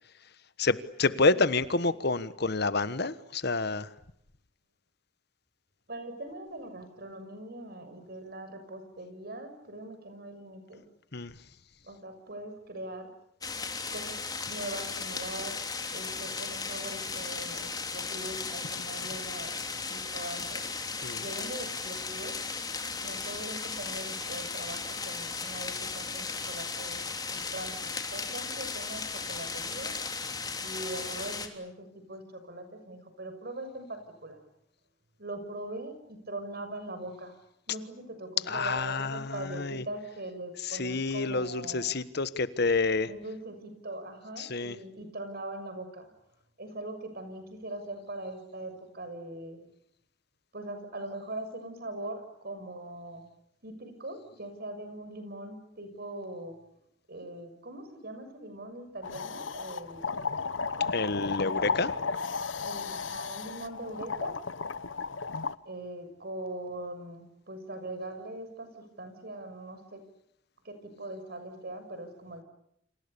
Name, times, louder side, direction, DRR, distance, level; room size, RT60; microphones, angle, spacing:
voice 1, 0.6-3.9 11.1-11.3 21.0-21.2 38.5-39.8 40.6-43.1 44.4-44.8 60.8-61.9, left 3 dB, 60° left, 14 dB, 1.3 m, -28 dB
voice 2, 1.1-1.4 5.9-10.8 11.8-13.2 13.9-14.2 14.5-15.6 15.9-19.6 19.9-20.6 21.2-22.4 23.0-30.0 30.6-34.4 35.2-37.4 37.7-41.9 43.0-46.1 46.6-49.6 50.5-53.2 53.6-56.6 57.1-60.4 62.6-64.4 65.6-70.0 70.6-72.4, right 1 dB, 55° right, 8 dB, 6.7 m, -41 dB
sound 1, 13.4-31.5, left 4 dB, 20° left, 3.2 m, -36 dB
sound 2, 59.0-65.6, left 4 dB, 85° left, 1.1 m, -34 dB
29.5 x 27.5 x 6.9 m, 0.75 s
head